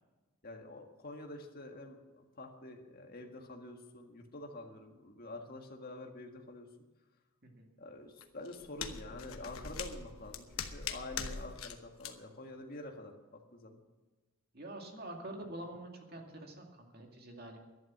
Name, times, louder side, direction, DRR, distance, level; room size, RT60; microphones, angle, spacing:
voice 1, 0.4-6.7 7.8-10.5 10.7-13.2 13.5-13.8, left 2 dB, 45° left, 3 dB, 1.8 m, -47 dB
sound 1, 8.2-11.7 12.0-12.1, left 6 dB, 75° left, 1.1 m, -42 dB
voice 2, 14.5-17.6, right 1 dB, 45° right, 2 dB, 2.3 m, -46 dB
12.0 x 11.0 x 7.3 m, 1.2 s
head